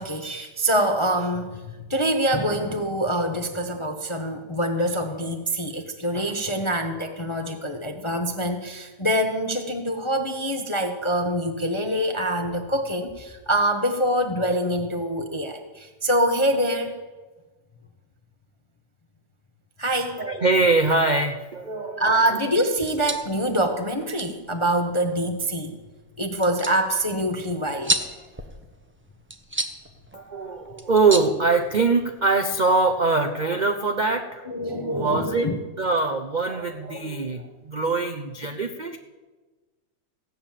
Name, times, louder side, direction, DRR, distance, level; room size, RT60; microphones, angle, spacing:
voice 1, 0.0-17.0 19.8-20.2 22.0-25.7 26.2-28.1 34.5-35.6, right 1 dB, 25° left, 4 dB, 0.6 m, -25 dB
voice 2, 20.2-22.2 30.1-34.4 34.9-39.0, right 3 dB, 85° right, 5 dB, 0.4 m, -23 dB
sound 1, 22.7-32.2, right 1 dB, 15° right, 0.4 m, -34 dB
16.5 x 8.6 x 7.4 m, 1.3 s
omnidirectional pair, 2.0 m